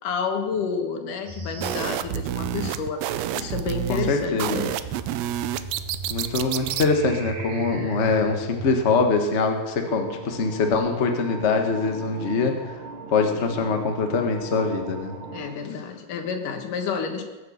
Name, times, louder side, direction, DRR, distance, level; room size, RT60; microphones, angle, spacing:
voice 1, 0.0-4.8 15.3-17.2, left 6 dB, 90° left, 5 dB, 3.1 m, -30 dB
sound 1, 1.3-9.1, equal, 65° right, 3.8 m, -39 dB
sound 2, 1.6-6.9, right 12 dB, 80° right, 1.5 m, -29 dB
voice 2, 3.9-4.7 6.1-12.8 13.1-15.1, left 4 dB, 40° left, 4 dB, 0.9 m, -23 dB
sound 3, 9.8-15.5, right 3 dB, 45° right, 2.8 m, -39 dB
21.0 x 8.3 x 6.5 m, 1.2 s
omnidirectional pair, 3.6 m